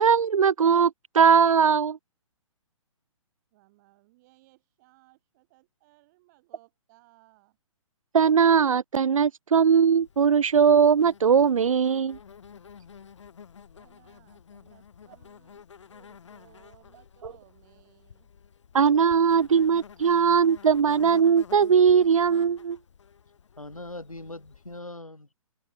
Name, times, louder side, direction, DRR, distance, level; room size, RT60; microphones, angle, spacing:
voice 1, 0.0-2.0 8.1-12.2 18.7-22.8, right 6 dB, 75° right, 0.4 m, -20 dB
voice 2, 3.5-7.6 13.7-15.6 15.9-18.3, right 21 dB, 30° right, 3.5 m, -60 dB
Insect, 9.6-24.8, left 7 dB, 60° left, 2.2 m, -50 dB
voice 3, 23.6-25.3, left 2 dB, 90° left, 3.1 m, -41 dB
figure-of-eight pair, 130°, 17 cm